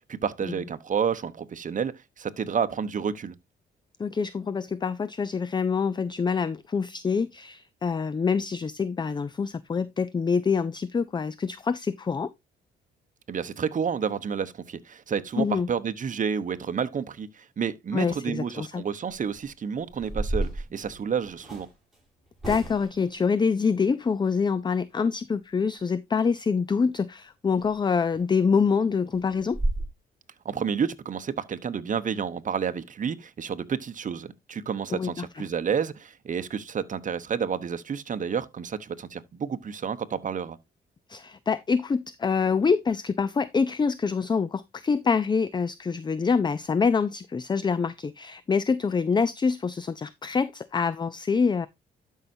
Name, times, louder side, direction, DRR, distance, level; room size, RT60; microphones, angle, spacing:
voice 1, 0.1-3.3 13.3-21.7 30.4-40.6, right 7 dB, 40° right, 1.0 m, -30 dB
voice 2, 4.0-12.3 15.4-15.7 17.9-18.8 22.5-29.6 34.9-35.4 41.1-51.7, left 5 dB, 20° left, 0.5 m, -26 dB
sound 1, 19.1-19.4 19.9-21.7 22.4-23.1 27.6-27.7 28.1-28.3 28.6-28.7 29.1-29.2 29.5-29.9, right 1 dB, ahead, 6.6 m, -31 dB
12.0 x 5.7 x 2.7 m
cardioid pair, 90°, 20 cm